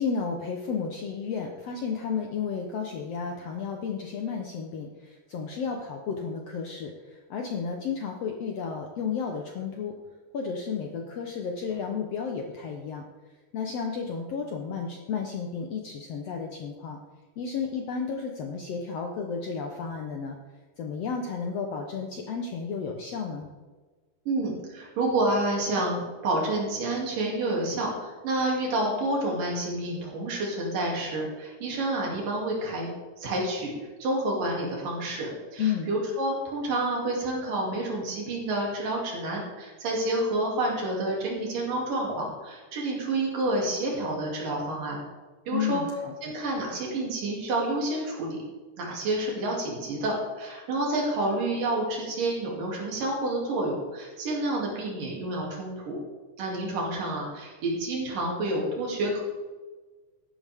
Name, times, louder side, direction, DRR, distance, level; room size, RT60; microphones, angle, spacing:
voice 1, 0.0-9.9 10.3-13.0 13.5-17.0 17.4-20.4 20.8-23.5 35.6-35.9 45.5-46.3, left 6 dB, 70° left, 2 dB, 1.6 m, -32 dB
voice 2, 24.3-32.9 33.2-33.7 34.0-45.0 45.5-45.8 46.2-48.4 48.8-56.0 56.4-59.2, right 2 dB, 75° right, -2 dB, 4.3 m, -29 dB
14.0 x 11.0 x 3.5 m, 1.3 s
omnidirectional pair, 4.0 m